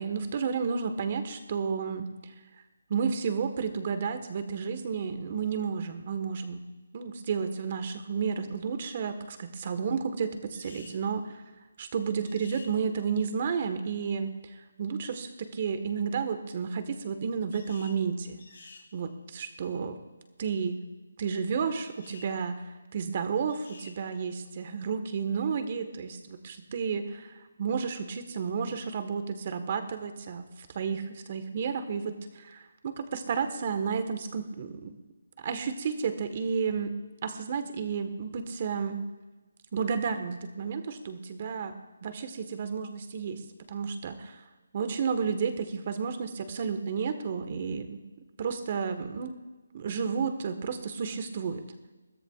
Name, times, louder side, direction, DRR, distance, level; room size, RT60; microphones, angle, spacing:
voice 1, 0.0-2.3 2.9-6.6 6.9-11.4 11.8-14.4 14.8-18.4 18.9-20.0 20.4-20.8 21.2-22.6 22.9-30.5 30.7-34.9 35.4-36.9 37.2-39.0 39.7-41.7 42.0-43.4 43.7-44.4 44.7-48.0 48.4-49.3 49.7-51.6, right 6 dB, 40° right, 9 dB, 1.4 m, -32 dB
sound 1, 10.5-11.0 12.2-12.7 17.5-18.0 18.4-18.9 21.8-22.3 23.5-24.0, left 4 dB, 70° left, 3.7 m, -51 dB
21.5 x 14.5 x 2.5 m, 1.2 s
hypercardioid pair, 160°, 0 cm